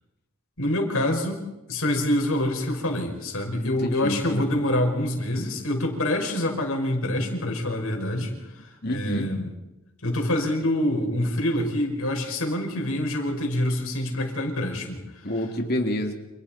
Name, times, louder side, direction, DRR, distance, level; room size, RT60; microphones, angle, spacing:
voice 1, 0.6-9.5 10.0-15.0, left 1 dB, 85° left, 2 dB, 5.6 m, -26 dB
voice 2, 3.6-4.6 8.8-9.3 15.2-16.1, left 1 dB, 45° left, 3 dB, 2.9 m, -28 dB
29.5 x 28.5 x 4.4 m, 0.97 s
head